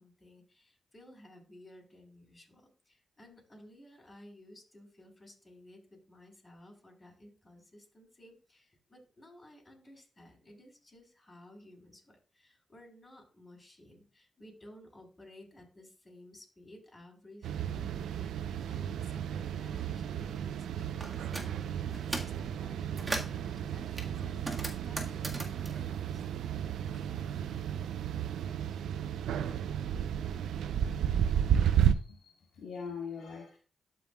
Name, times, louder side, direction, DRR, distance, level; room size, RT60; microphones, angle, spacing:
voice 1, 0.0-26.4 26.9-27.6, left 1 dB, 30° left, 4.4 m, -56 dB
sound 1, 17.4-31.9, right 9 dB, 85° right, 0.4 m, -33 dB
sound 2, 21.0-21.5 21.9-22.4 22.8-23.4 24.0-26.9 27.2-28.3, right 2 dB, 30° right, 1.7 m, -39 dB
voice 2, 31.8-33.6, left 6 dB, 80° left, 1.9 m, -43 dB
12.5 x 5.6 x 2.4 m
supercardioid pair, 50°, 0 cm